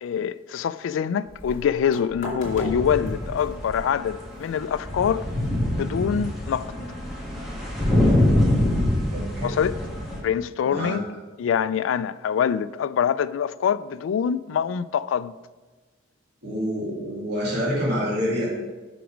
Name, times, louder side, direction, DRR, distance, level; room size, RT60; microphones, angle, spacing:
voice 1, 0.0-5.2 5.8-6.7 9.4-9.7 10.2-11.0 11.4-15.3, left 8 dB, 85° left, 0.3 m, -25 dB
sound 1, 1.2-6.3, left 1 dB, 45° left, 2.6 m, -38 dB
sound 2, 2.4-10.2, left 1 dB, ahead, 1.9 m, -25 dB
voice 2, 9.1-9.6 10.6-11.0 16.4-18.5, equal, 60° right, 2.3 m, -27 dB
6.2 x 6.1 x 5.0 m
head